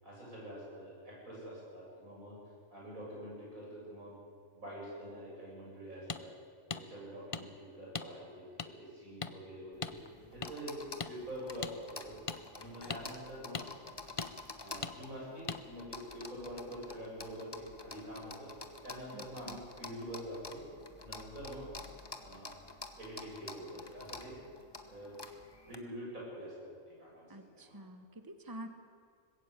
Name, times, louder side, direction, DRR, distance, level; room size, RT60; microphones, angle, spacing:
voice 1, 0.0-2.4 2.7-4.1 4.5-6.3 6.7-10.8 11.1-12.2 12.5-13.7 14.6-18.5 18.8-20.6 21.0-21.7 22.2-22.5 23.0-24.4 24.9-25.2 25.6-26.5 27.0-27.8, equal, 85° right, -5 dB, 8.4 m, -46 dB
sound 1, 6.1-6.2 6.7-6.8 7.3-7.4 7.9-8.1 8.6-8.7 9.2-9.3 9.8-10.0 10.4-10.5 11.0-11.1 11.6-11.7 12.3-12.4 12.9-13.0 13.5-13.7 14.2-14.3 14.8-14.9 15.5-15.6, left 5 dB, 35° left, 0.5 m, -38 dB
sound 2, 9.7-25.8, left 3 dB, 20° left, 1.1 m, -49 dB
voice 2, 19.1-19.6 27.3-28.7, right 1 dB, 15° right, 8 dB, 1.3 m, -48 dB
20.0 x 16.5 x 8.3 m, 2.2 s
omnidirectional pair, 1.4 m